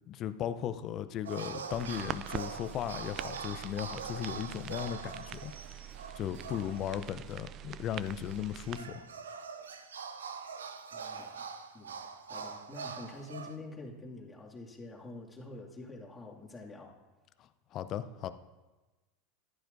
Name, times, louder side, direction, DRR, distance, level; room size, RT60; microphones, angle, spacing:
voice 1, 0.1-5.5 6.2-9.0 17.4-18.3, left 10 dB, 45° left, 11 dB, 0.6 m, -37 dB
sound 1, 1.2-7.0 7.3-7.4 8.3-13.6, right 5 dB, 85° right, 0.6 m, -43 dB
sound 2, 1.7-8.8, right 11 dB, 45° right, 0.4 m, -44 dB
voice 2, 6.3-6.7 8.8-9.0 10.9-11.4 11.7-12.0 12.3-16.9, left 2 dB, 15° left, -2 dB, 2.3 m, -47 dB
14.5 x 11.5 x 2.7 m, 1.2 s
hypercardioid pair, 90°, 0 cm